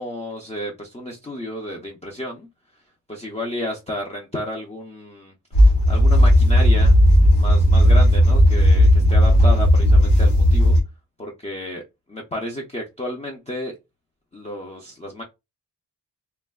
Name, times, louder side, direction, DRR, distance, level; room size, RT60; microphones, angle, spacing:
voice 1, 0.0-2.5 3.1-5.3 5.9-7.0 7.4-10.8 11.2-11.8 12.1-13.7 14.3-15.2, left 1 dB, 15° left, 0.4 m, -31 dB
sound 1, 5.5-10.8, equal, 80° left, 0.8 m, -14 dB
3.1 x 2.0 x 2.2 m
wide cardioid pair, 150°, 41 cm